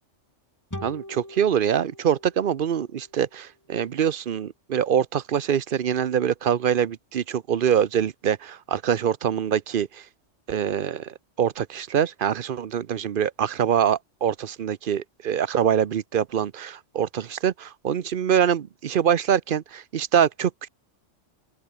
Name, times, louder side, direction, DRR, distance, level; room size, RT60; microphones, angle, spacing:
sound 1, 0.7-4.1, left 1 dB, 15° left, 3.5 m, -43 dB
voice 1, 0.8-10.0 10.5-20.7, right 8 dB, 50° right, 0.8 m, -24 dB
open air
omnidirectional pair, 1.3 m